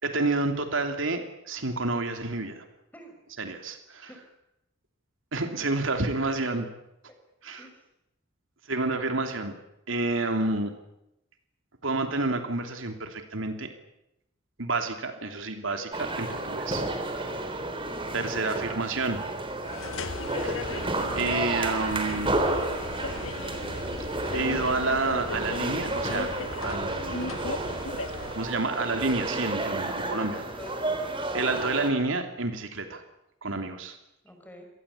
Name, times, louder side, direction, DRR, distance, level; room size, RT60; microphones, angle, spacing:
voice 1, 0.0-2.6 3.4-4.1 5.3-6.6 7.4-7.7 8.7-9.5 9.9-10.7 11.8-13.7 14.6-16.8 18.1-19.2 20.4-20.6 21.2-22.3 24.3-27.3 28.4-30.4 31.3-33.0 33.4-34.0, right 3 dB, 75° right, 6 dB, 3.1 m, -29 dB
sound 1, 15.9-31.9, right 2 dB, 25° right, 3.5 m, -32 dB
sound 2, 19.6-28.5, left 3 dB, 85° left, 1.9 m, -37 dB
voice 2, 30.2-31.4 34.2-34.6, equal, 10° left, 4 dB, 6.1 m, -46 dB
27.0 x 19.0 x 8.5 m, 0.85 s
head